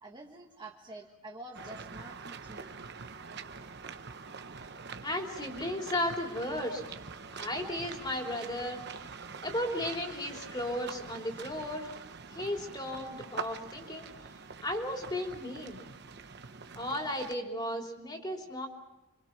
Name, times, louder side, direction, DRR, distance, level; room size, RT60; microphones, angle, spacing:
voice 1, 0.0-2.8, right 1 dB, 20° right, 1 dB, 1.5 m, -48 dB
sound 1, 1.5-17.3, right 5 dB, 50° right, 1.1 m, -45 dB
voice 2, 5.0-6.8 7.3-8.8 9.4-11.9 12.3-14.1 14.6-15.8 16.7-18.7, left 1 dB, 20° left, 2 dB, 3.4 m, -35 dB
29.5 x 25.0 x 6.0 m, 1.0 s
head